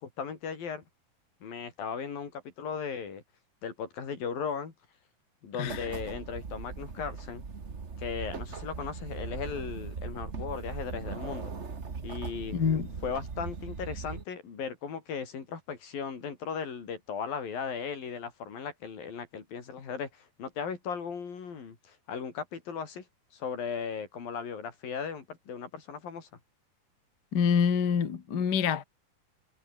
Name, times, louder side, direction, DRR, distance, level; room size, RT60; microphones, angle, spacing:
voice 1, 0.0-0.8 1.4-3.2 3.6-4.7 5.4-7.5 8.0-11.5 12.0-12.6 13.0-23.1 23.3-26.3, left 6 dB, 75° left, 5.7 m, -37 dB
voice 2, 5.6-5.9 12.5-12.9 27.3-28.8, left 7 dB, 40° left, 1.6 m, -26 dB
sound 1, 5.7-14.2, right 5 dB, 40° right, 0.9 m, -39 dB
omnidirectional pair, 4.1 m